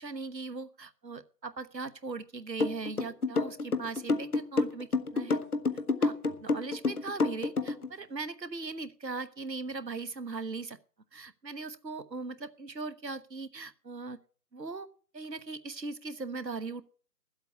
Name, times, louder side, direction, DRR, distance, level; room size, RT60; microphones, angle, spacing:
voice 1, 0.0-5.4 6.0-6.2 6.4-10.8 11.1-14.2 14.5-14.9 15.1-16.8, right 3 dB, 90° right, 14 dB, 1.2 m, -39 dB
sound 1, 2.6-7.9, left 3 dB, 65° left, 1.2 m, -28 dB
11.5 x 8.1 x 8.1 m, 0.43 s
figure-of-eight pair, 155°, 49 cm